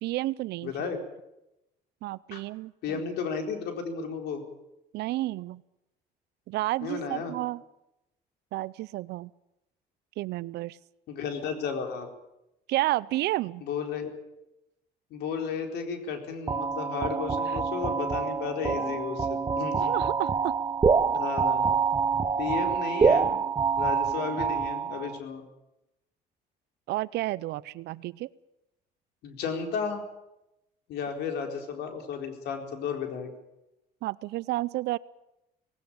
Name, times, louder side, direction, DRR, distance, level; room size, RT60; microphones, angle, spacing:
voice 1, 0.0-0.7 2.0-3.0 4.9-5.6 6.5-7.6 8.5-9.3 10.2-10.8 12.7-13.6 17.5-17.6 19.7-20.5 26.9-28.3 34.0-35.0, right 17 dB, 80° right, 20 dB, 0.7 m, -31 dB
voice 2, 0.6-1.0 2.3-2.4 2.8-4.4 6.8-7.3 11.1-12.1 13.6-14.1 15.1-20.0 21.1-21.8 22.4-23.4 23.8-25.4 29.2-30.0 30.9-33.3, left 6 dB, 75° left, 5 dB, 4.3 m, -33 dB
sound 1, 16.5-25.2, right 5 dB, 25° right, 0.9 m, -26 dB
19.0 x 17.5 x 8.8 m, 0.89 s
cardioid pair, 110°, 17 cm